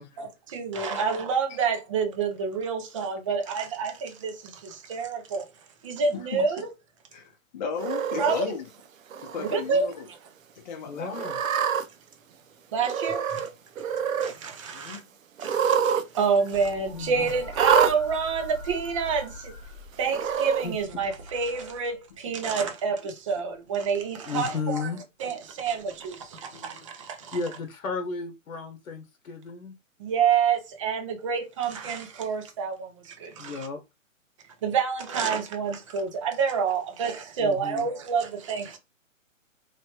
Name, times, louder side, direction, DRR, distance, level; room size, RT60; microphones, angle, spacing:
voice 1, 0.2-5.5 5.8-6.7 8.2-8.5 9.4-9.9 12.7-13.5 14.2-15.0 15.4-19.5 20.0-27.4 30.0-33.7 34.6-38.8, right 5 dB, 25° right, 0.5 m, -28 dB
voice 2, 7.1-8.7 9.2-10.1 10.6-11.3 14.7-15.1 22.3-22.4 26.5-26.9, left 6 dB, 35° left, 0.6 m, -36 dB
Cat, 7.8-8.4 9.1-9.6 9.9-10.0 11.1-11.8 12.8-13.5 13.8-14.3 15.4-16.0 16.3-16.4 17.5-17.9 18.9-19.0 20.1-20.7, right 7 dB, 75° right, 0.6 m, -25 dB
voice 3, 10.9-11.4 16.9-17.3 20.6-20.7 24.3-25.0 27.3-29.7 33.4-33.8 37.4-37.9, left 4 dB, 85° left, 0.9 m, -33 dB
sound 1, 16.5-22.3 23.5-24.0 25.8-25.9, left 2 dB, 10° left, 1.0 m, -43 dB
3.2 x 2.2 x 2.8 m
hypercardioid pair, 135°, 40 cm